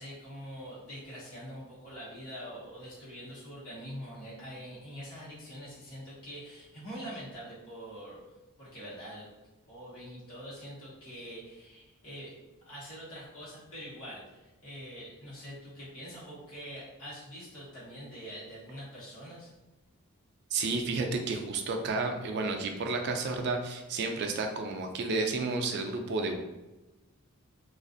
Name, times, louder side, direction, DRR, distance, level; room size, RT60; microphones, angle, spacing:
voice 1, 0.0-8.2 8.6-9.3 9.7-12.3 12.7-19.5, equal, 75° left, -8 dB, 1.1 m, -44 dB
voice 2, 20.5-26.4, right 3 dB, 50° right, 4 dB, 0.3 m, -31 dB
2.5 x 2.3 x 2.5 m, 1.1 s
head